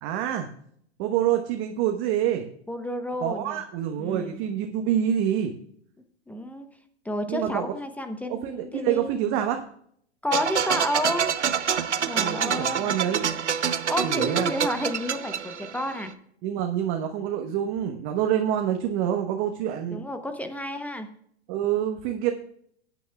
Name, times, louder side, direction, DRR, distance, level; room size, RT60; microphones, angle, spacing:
voice 1, 0.0-0.5 1.0-2.5 3.2-5.5 7.3-7.6 8.3-9.6 12.1-13.3 14.0-14.5 16.4-20.0 21.5-22.3, right 10 dB, 40° right, 5 dB, 1.1 m, -26 dB
voice 2, 2.7-3.6 4.0-4.4 6.3-6.7 7.0-9.1 10.2-11.3 12.1-12.9 13.9-16.1 19.9-21.1, left 1 dB, 5° left, 8 dB, 0.9 m, -31 dB
sound 1, 10.3-16.0, right 8 dB, 90° right, 0.8 m, -27 dB
18.0 x 9.4 x 2.3 m, 0.66 s
hypercardioid pair, 110°, 34 cm